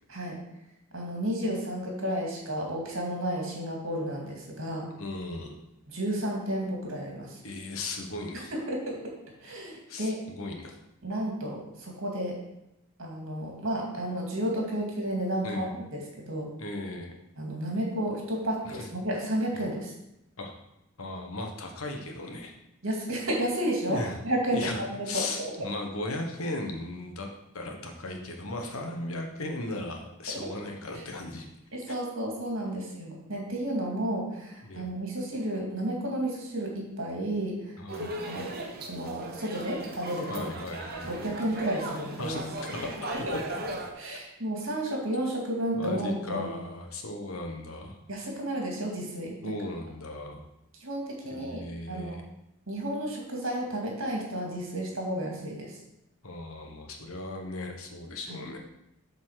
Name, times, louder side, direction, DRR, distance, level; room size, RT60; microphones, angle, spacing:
voice 1, 0.9-4.9 5.9-7.4 8.3-10.2 11.0-12.4 13.0-15.7 15.9-16.0 16.3-16.5 17.4-19.9 22.8-25.5 30.4-30.5 30.9-31.0 31.7-38.5 38.8-40.5 41.0-42.4 43.1-43.3 43.9-46.5 48.1-49.6 50.8-51.6 51.9-52.2 52.7-55.8 58.3-58.4, right 1 dB, 60° right, -1 dB, 2.4 m, -32 dB
voice 2, 5.0-5.6 7.4-8.5 9.9-10.8 15.4-15.7 16.6-17.1 18.6-18.9 19.5-19.6 20.4-20.5 21.0-22.5 23.9-24.2 24.5-27.3 27.5-31.5 34.6-34.8 37.8-38.1 40.3-41.3 42.2-43.1 45.7-48.0 49.4-50.5 51.2-52.2 56.2-58.6, left 2 dB, 75° left, 3 dB, 1.3 m, -37 dB
sound 1, 37.9-43.9, right 1 dB, 45° right, 1.1 m, -37 dB
7.7 x 4.2 x 6.4 m, 0.86 s
head